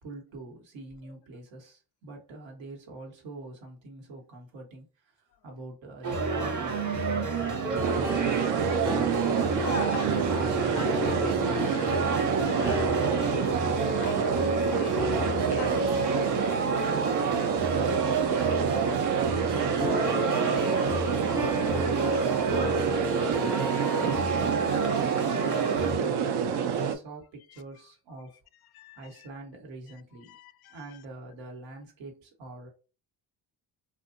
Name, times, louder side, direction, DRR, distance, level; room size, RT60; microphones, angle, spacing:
voice 1, 0.0-8.7 19.4-28.4 29.0-30.4 30.7-32.7, right 2 dB, 75° right, 1.2 m, -45 dB
sound 1, 6.0-26.0, right 4 dB, 40° right, 1.0 m, -29 dB
sound 2, 7.4-24.2, right 1 dB, 5° right, 0.5 m, -37 dB
sound 3, 7.8-27.0, right 7 dB, 60° right, 0.6 m, -28 dB
voice 2, 9.5-17.8 25.5-26.1 26.9-27.0 27.5-27.6 28.7-29.3 30.2-31.0, left 10 dB, 55° left, 0.5 m, -41 dB
2.6 x 2.4 x 2.5 m
supercardioid pair, 70°, 45 cm